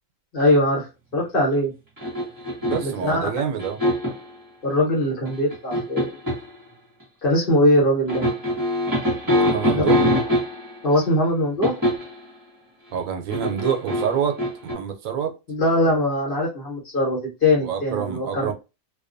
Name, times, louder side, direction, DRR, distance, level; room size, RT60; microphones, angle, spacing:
voice 1, 0.3-0.9 1.1-1.7 2.8-3.2 4.6-6.2 7.2-8.2 9.7-9.8 10.8-11.7 15.5-18.4, left 1 dB, 45° left, 1.1 m, -21 dB
sound 1, 2.0-3.0 3.6-4.3 5.3-6.5 8.1-10.8 11.6-12.2 13.3-14.7, left 1 dB, 15° right, 1.0 m, -23 dB
voice 2, 2.6-3.8 9.3-10.0 12.9-15.3 17.6-18.5, right 8 dB, 80° right, 1.0 m, -27 dB
2.4 x 2.3 x 2.5 m
omnidirectional pair, 1.4 m